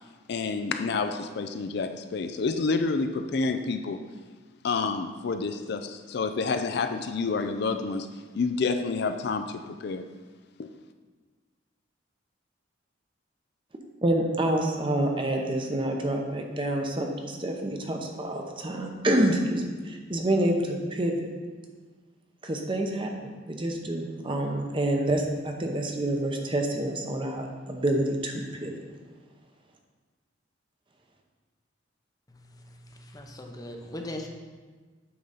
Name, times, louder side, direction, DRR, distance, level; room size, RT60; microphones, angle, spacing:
voice 1, 0.3-4.0 4.6-8.1 8.3-10.0, left 4 dB, 55° left, 8 dB, 0.4 m, -28 dB
voice 2, 14.0-21.3 22.4-23.1 23.5-28.7, right 1 dB, 25° right, 2 dB, 0.8 m, -27 dB
voice 3, 32.3-34.3, left 1 dB, 20° left, 3 dB, 0.7 m, -40 dB
8.6 x 3.8 x 5.5 m, 1.4 s
head